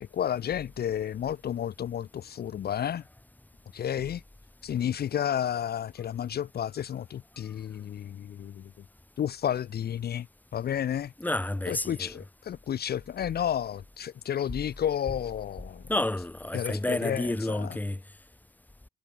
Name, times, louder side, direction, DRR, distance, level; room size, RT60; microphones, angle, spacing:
voice 1, 0.0-3.0 3.7-4.2 4.6-8.7 9.2-10.3 10.5-11.1 11.7-15.9 16.5-17.8, left 9 dB, 55° left, 0.8 m, -31 dB
voice 2, 11.2-12.1 15.9-18.0, left 1 dB, 10° left, 1.7 m, -30 dB
cardioid pair, 90°, 20 cm